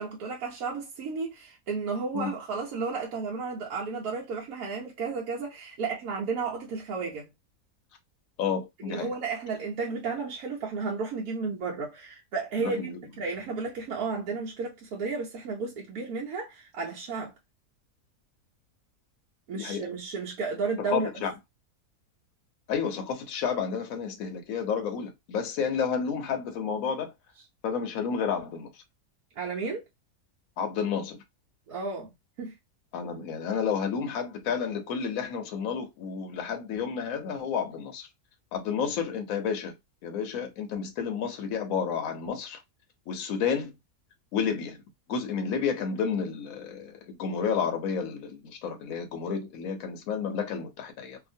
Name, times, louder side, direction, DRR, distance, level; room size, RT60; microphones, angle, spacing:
voice 1, 0.0-7.3 8.8-17.3 19.5-21.1 29.4-29.8 31.7-32.1 32.4-32.5, right 4 dB, 70° right, 1.1 m, -33 dB
voice 2, 8.4-9.1 12.6-13.0 19.5-19.9 20.9-21.3 22.7-27.1 27.6-28.7 30.6-31.2 32.9-38.1 38.5-39.7 40.0-42.6 43.1-43.7 44.3-44.8 45.1-51.2, left 6 dB, 65° left, 1.1 m, -31 dB
2.8 x 2.5 x 2.6 m
omnidirectional pair, 1.7 m